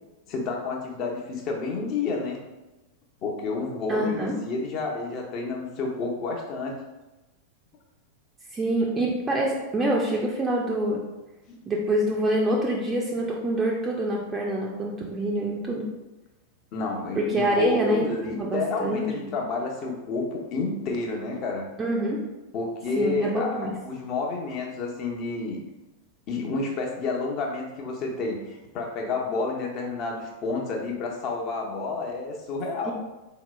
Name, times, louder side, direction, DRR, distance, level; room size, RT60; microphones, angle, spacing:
voice 1, 0.3-2.4 3.2-6.8 11.5-11.6 16.7-21.6 22.5-25.6 26.3-32.9, left 3 dB, 40° left, 0 dB, 0.7 m, -30 dB
voice 2, 3.9-4.4 8.5-11.0 11.7-15.9 17.2-19.3 21.8-22.2 23.0-23.7 32.8-32.9, right 1 dB, 20° right, -3 dB, 0.4 m, -26 dB
3.9 x 2.8 x 2.2 m, 1.1 s
figure-of-eight pair, 90°, 0 cm